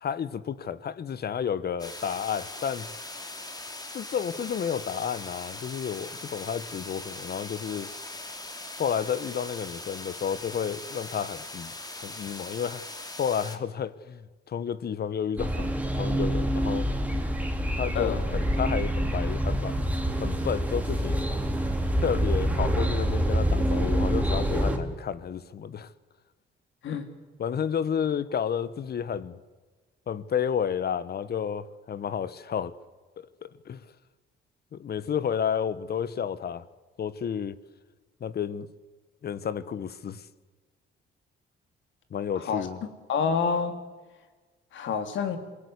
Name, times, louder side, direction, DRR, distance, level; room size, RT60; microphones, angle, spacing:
voice 1, 0.0-2.9 3.9-7.9 8.8-11.7 12.0-12.8 13.2-14.2 14.5-16.9 17.8-19.8 20.2-21.2 22.0-25.9 27.4-29.4 30.1-32.7 33.2-33.8 34.7-36.6 37.0-37.5 38.2-38.7 39.2-40.2 42.1-42.8, left 8 dB, 55° left, 1.3 m, -31 dB
sound 1, 1.8-13.6, left 2 dB, 20° left, 3.0 m, -40 dB
sound 2, 15.4-24.8, equal, 5° right, 3.5 m, -26 dB
voice 2, 42.3-42.7 43.1-43.8 44.7-45.4, left 6 dB, 70° left, 3.2 m, -27 dB
27.0 x 18.5 x 8.2 m
cardioid pair, 90°, 20 cm